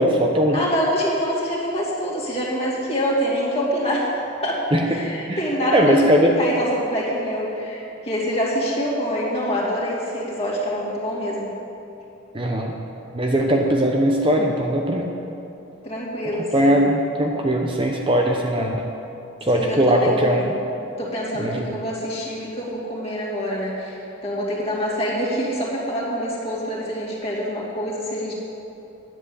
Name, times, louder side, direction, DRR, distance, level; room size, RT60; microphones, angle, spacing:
voice 1, 0.0-0.6 4.7-5.0 5.3-5.4 5.7-6.4 12.3-12.7 13.1-15.1 16.5-18.8 19.4-20.5 21.3-21.7, equal, 25° right, 1 dB, 0.7 m, -19 dB
voice 2, 0.5-4.1 4.4-4.6 4.9-11.5 15.8-16.8 19.5-20.5 21.0-28.3, equal, 30° left, -6 dB, 2.5 m, -26 dB
10.5 x 8.1 x 8.2 m, 2.9 s
head